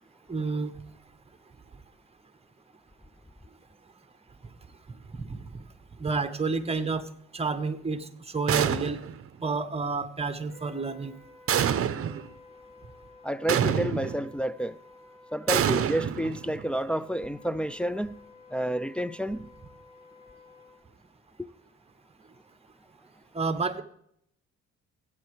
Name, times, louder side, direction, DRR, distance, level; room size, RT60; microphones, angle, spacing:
voice 1, 0.3-0.7 5.1-5.6 6.0-7.1 7.3-9.0 9.4-11.1 23.3-23.8, right 4 dB, 20° right, 1.1 m, -30 dB
sound 1, 8.5-9.2 11.5-12.3 13.5-14.3 15.5-16.7, right 9 dB, 50° right, 0.7 m, -27 dB
Wind instrument woodwind instrument, 10.4-20.8, left 3 dB, 85° left, 4.3 m, -53 dB
voice 2, 13.2-14.8 15.3-18.2 18.5-19.4, equal, 5° left, 0.3 m, -30 dB
17.0 x 8.3 x 3.3 m
cardioid pair, 90°, 30 cm